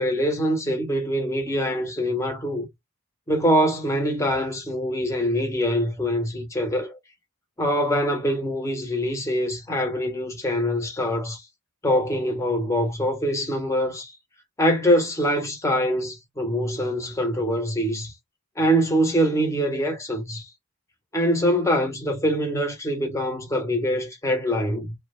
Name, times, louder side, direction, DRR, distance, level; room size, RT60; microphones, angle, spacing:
voice 1, 0.0-2.7 3.3-7.0 7.6-11.4 11.8-14.1 14.6-18.1 18.6-20.5 21.1-24.9, equal, 15° left, 0.6 m, -24 dB
2.3 x 2.1 x 2.9 m
head